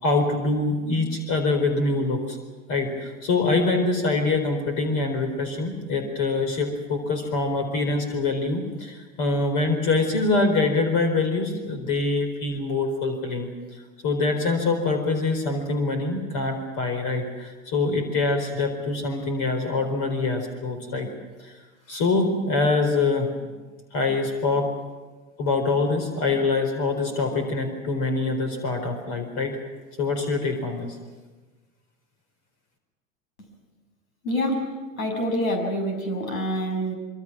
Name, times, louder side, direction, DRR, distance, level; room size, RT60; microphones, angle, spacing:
voice 1, 0.0-2.4 2.7-13.5 14.0-21.1 21.4-21.5 21.9-23.3 23.9-24.7 25.4-29.6 30.0-31.0, left 3 dB, 50° left, 5 dB, 4.4 m, -24 dB
voice 2, 34.2-34.7 35.0-36.9, equal, 80° left, 4 dB, 6.9 m, -26 dB
26.0 x 23.5 x 6.2 m, 1.3 s
hypercardioid pair, 90°, 41 cm